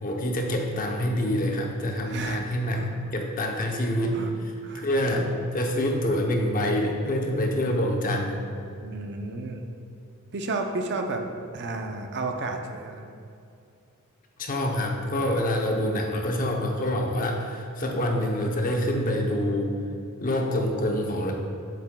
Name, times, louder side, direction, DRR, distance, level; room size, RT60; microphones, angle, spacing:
voice 1, 0.0-2.8 3.1-4.2 4.7-5.3 5.5-8.5 14.4-19.8 20.2-21.3, left 1 dB, 40° left, 1 dB, 0.7 m, -26 dB
voice 2, 2.0-2.4 2.7-2.9 4.1-4.3 4.6-5.3 8.8-9.7 10.3-11.3 11.5-13.1, right 3 dB, 55° right, 4 dB, 0.6 m, -32 dB
7.5 x 7.5 x 2.2 m, 2.5 s
head